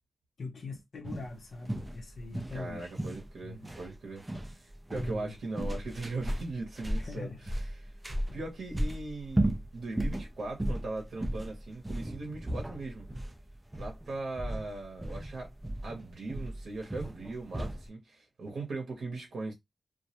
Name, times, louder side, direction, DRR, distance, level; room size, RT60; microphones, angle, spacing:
voice 1, 0.4-2.9 3.4-3.7 4.9-5.4 7.0-7.4 8.3-8.4, left 3 dB, 60° left, 0.5 m, -42 dB
sound 1, 1.0-17.9, right 1 dB, 15° right, 0.3 m, -35 dB
voice 2, 2.5-7.9 8.3-13.1 13.7-15.5 15.8-19.5, right 3 dB, 85° right, 0.7 m, -39 dB
2.2 x 2.0 x 2.7 m
wide cardioid pair, 140°, 0 cm